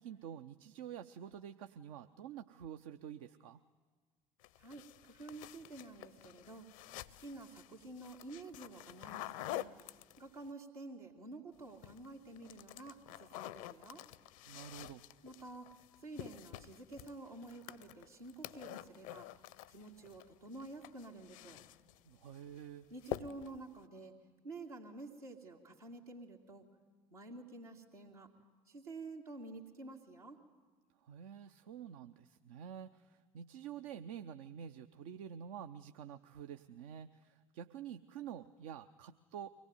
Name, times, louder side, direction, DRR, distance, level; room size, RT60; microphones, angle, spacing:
voice 1, 0.0-3.6 14.5-15.1 22.1-22.9 31.0-39.5, right 9 dB, 65° right, 9 dB, 0.6 m, -48 dB
sound 1, 4.4-10.5 11.6-12.1 12.4-20.2 20.5-22.0 22.3-22.6 23.0-23.6, left 14 dB, 65° left, 0.6 m, -48 dB
voice 2, 4.6-6.7 7.1-9.7 10.2-14.0 15.2-15.7 16.0-19.3 19.7-21.6 22.9-24.1 24.4-26.7 27.1-28.3 28.7-30.4, right 2 dB, 80° right, -1 dB, 2.5 m, -50 dB
24.0 x 18.5 x 9.6 m, 1.5 s
figure-of-eight pair, 55°, 19 cm